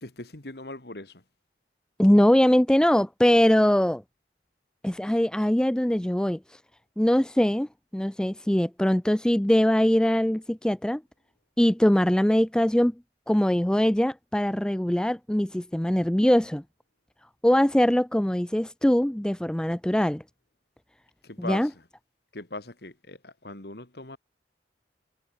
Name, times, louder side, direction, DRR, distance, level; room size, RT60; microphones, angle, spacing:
voice 1, 0.0-1.2 21.2-21.7 22.3-24.2, left 2 dB, 60° left, 2.2 m, -39 dB
voice 2, 2.0-4.0 4.8-6.4 7.0-7.7 7.9-11.0 11.6-12.9 13.3-16.6 17.4-20.2 21.4-21.7, equal, 5° left, 0.4 m, -22 dB
head